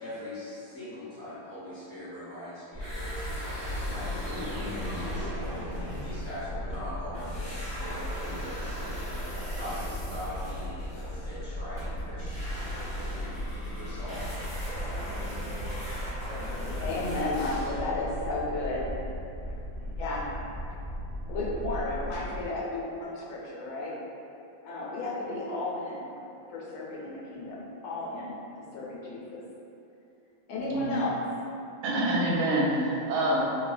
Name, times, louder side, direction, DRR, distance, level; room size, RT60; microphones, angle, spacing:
voice 1, 0.0-12.6 13.1-14.5, left 1 dB, 40° left, -14 dB, 1.1 m, -42 dB
sound 1, 2.7-22.5, equal, 65° left, 0.5 m, -37 dB
sound 2, 2.8-6.9 7.1-17.9, equal, 10° left, 0.3 m, -40 dB
sound 3, 4.2-6.6, left 1 dB, 75° right, 1.0 m, -40 dB
voice 2, 16.8-18.9 19.5-19.6 20.0-20.4 21.3-24.1 24.6-26.1 26.5-29.5 30.5-31.3, left 2 dB, 85° left, -4 dB, 1.4 m, -33 dB
voice 3, 30.7-31.0 31.8-33.4, right 1 dB, 90° right, -4 dB, 1.4 m, -26 dB
3.4 x 2.1 x 2.4 m, 2.7 s
omnidirectional pair, 2.2 m